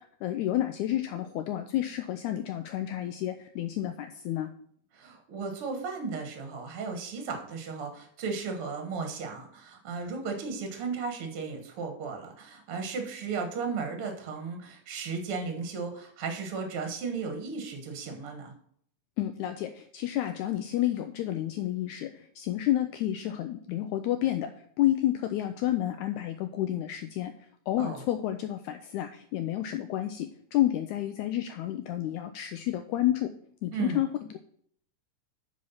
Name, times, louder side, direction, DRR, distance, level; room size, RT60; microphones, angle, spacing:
voice 1, 0.2-4.5 19.2-33.3 33.6-34.4, left 13 dB, 90° left, 7 dB, 1.7 m, -30 dB
voice 2, 4.9-18.5 27.8-28.0 33.7-34.0, right 5 dB, 55° right, 4 dB, 1.7 m, -35 dB
9.4 x 4.3 x 5.5 m, 0.62 s
omnidirectional pair, 3.9 m